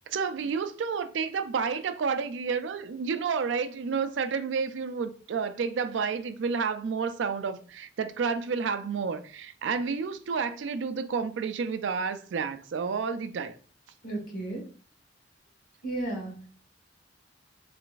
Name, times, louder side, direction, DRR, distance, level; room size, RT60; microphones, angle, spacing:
voice 1, 0.1-13.6, right 5 dB, 90° right, 0.4 m, -30 dB
voice 2, 14.0-14.7 15.8-16.4, right 2 dB, 50° left, 1.7 m, -34 dB
3.9 x 3.2 x 2.4 m
head